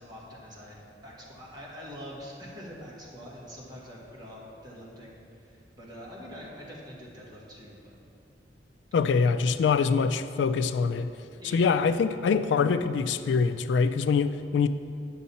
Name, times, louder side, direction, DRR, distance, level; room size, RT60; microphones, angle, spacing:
voice 1, 0.0-7.9 11.4-12.0, equal, 25° right, -5 dB, 1.7 m, -44 dB
voice 2, 8.9-11.1 11.5-14.7, left 5 dB, 75° left, 12 dB, 0.3 m, -24 dB
9.3 x 6.4 x 4.2 m, 2.5 s
head